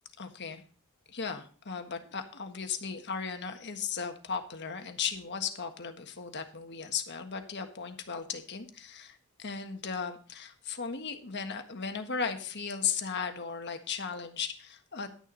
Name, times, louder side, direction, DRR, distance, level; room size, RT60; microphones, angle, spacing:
voice 1, 0.2-0.6 1.1-15.1, left 6 dB, 50° left, 6 dB, 1.5 m, -36 dB
11.0 x 10.0 x 4.0 m, 0.41 s
head